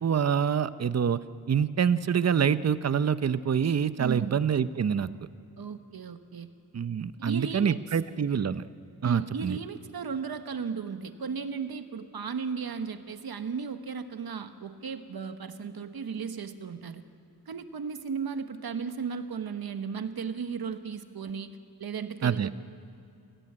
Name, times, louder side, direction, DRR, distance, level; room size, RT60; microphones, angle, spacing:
voice 1, 0.0-1.2 1.5-5.1 6.7-8.6 9.0-9.6 22.2-22.5, right 7 dB, 40° right, 14 dB, 0.7 m, -26 dB
voice 2, 4.0-4.4 5.6-6.5 7.2-7.8 9.0-17.0 17.5-22.5, right 6 dB, 65° right, 9 dB, 1.3 m, -35 dB
28.5 x 17.0 x 8.8 m, 2.5 s
wide cardioid pair, 125°, 39 cm